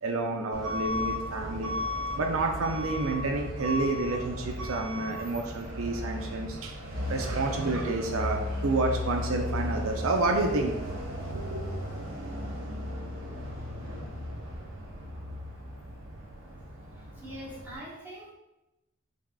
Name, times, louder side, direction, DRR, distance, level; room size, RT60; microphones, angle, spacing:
voice 1, 0.0-1.8 2.2-6.8 7.1-10.7 11.3-11.6, right 3 dB, 85° right, 3 dB, 0.5 m, -29 dB
Truck / Alarm, 0.5-17.8, left 1 dB, 70° right, 1.0 m, -35 dB
voice 2, 17.0-18.3, equal, 10° right, -7 dB, 1.1 m, -43 dB
5.6 x 3.5 x 2.3 m, 0.96 s
head